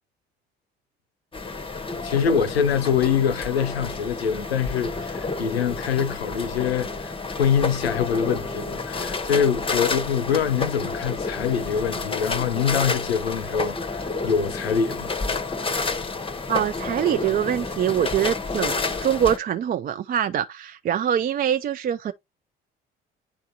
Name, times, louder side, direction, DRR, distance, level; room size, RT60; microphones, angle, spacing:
sound 1, 1.3-19.4, left 3 dB, 20° left, 0.8 m, -30 dB
voice 1, 2.0-15.1 15.4-15.6, left 7 dB, 90° left, 0.5 m, -24 dB
voice 2, 16.5-22.1, right 9 dB, 30° right, 0.4 m, -24 dB
10.0 x 3.5 x 2.7 m
figure-of-eight pair, 50°, 30 cm